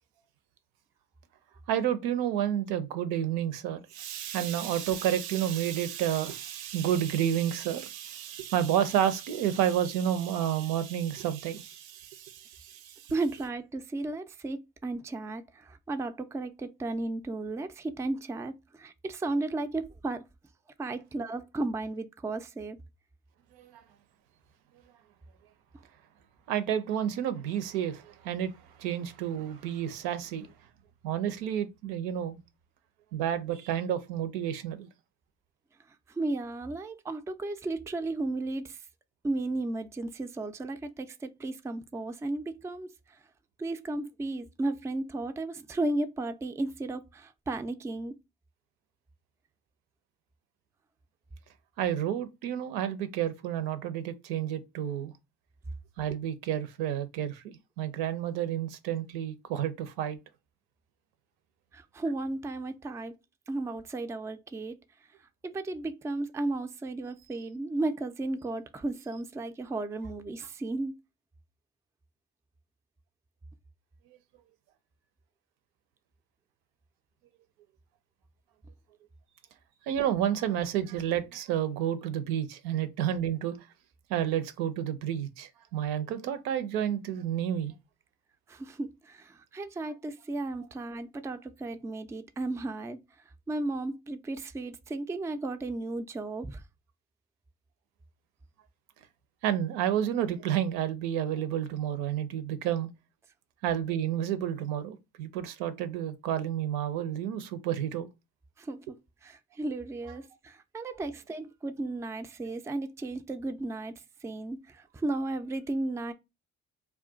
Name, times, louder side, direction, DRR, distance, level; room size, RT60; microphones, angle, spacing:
voice 1, 1.7-13.1 23.5-23.8 26.5-30.5 31.0-32.4 33.1-34.9 51.8-55.1 56.0-60.2 79.9-83.6 84.1-87.7 99.4-102.9 103.6-108.1, right 10 dB, 80° right, 0.5 m, -30 dB
voice 2, 13.1-20.2 20.8-22.8 36.1-38.8 39.2-43.2 43.6-48.1 61.7-63.1 63.5-64.8 65.4-71.0 88.5-93.0 93.5-96.6 108.6-109.0 109.2-113.9 114.2-116.1, right 2 dB, 10° right, 0.3 m, -34 dB
2.3 x 2.2 x 3.7 m
hypercardioid pair, 55°, 37 cm